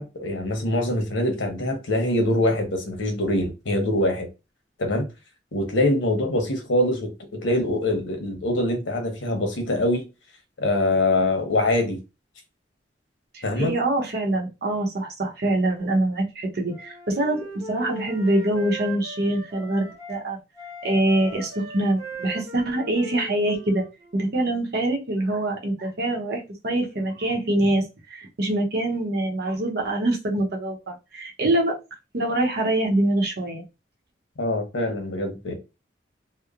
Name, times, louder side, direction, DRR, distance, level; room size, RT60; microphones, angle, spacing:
voice 1, 0.0-4.3 4.8-5.1 5.5-10.0 10.6-12.0 13.4-13.7 34.4-35.5, left 1 dB, 90° left, 0.8 m, -24 dB
voice 2, 13.3-17.4 17.7-20.4 20.8-23.8 24.1-31.7 32.1-33.6, right 1 dB, 60° right, 0.7 m, -24 dB
Wind instrument woodwind instrument, 16.7-20.2 20.5-24.3, right 1 dB, 15° right, 0.9 m, -39 dB
2.9 x 2.0 x 2.4 m
head